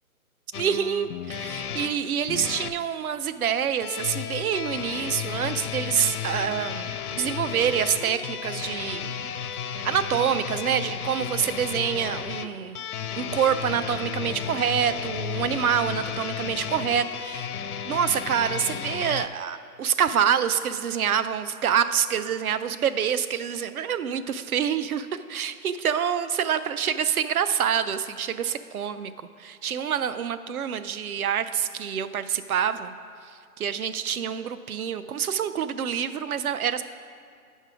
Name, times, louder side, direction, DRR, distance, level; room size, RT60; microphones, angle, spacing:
sound 1, 0.5-2.8 3.8-19.3, left 8 dB, 75° left, 0.6 m, -33 dB
voice 1, 0.6-9.2 9.8-12.8 13.2-17.5 17.8-29.1 29.4-32.9 33.2-36.8, right 8 dB, 70° right, 13 dB, 0.5 m, -26 dB
8.3 x 5.4 x 4.8 m, 2.4 s
hypercardioid pair, 175°, 45 cm